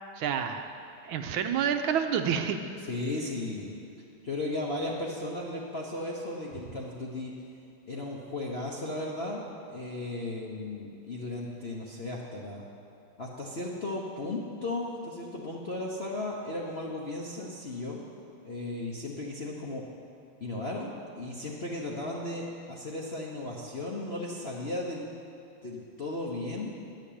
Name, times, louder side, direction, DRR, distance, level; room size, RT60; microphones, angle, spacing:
voice 1, 0.2-0.7 1.0-2.6, right 7 dB, 75° right, 6 dB, 1.4 m, -28 dB
voice 2, 2.9-3.7 4.2-7.3 7.9-9.4 9.7-12.6 13.2-18.1 18.4-19.8 20.4-25.0 25.6-26.7, left 2 dB, 45° left, -3 dB, 0.8 m, -35 dB
11.5 x 6.5 x 8.6 m, 2.6 s
omnidirectional pair, 2.4 m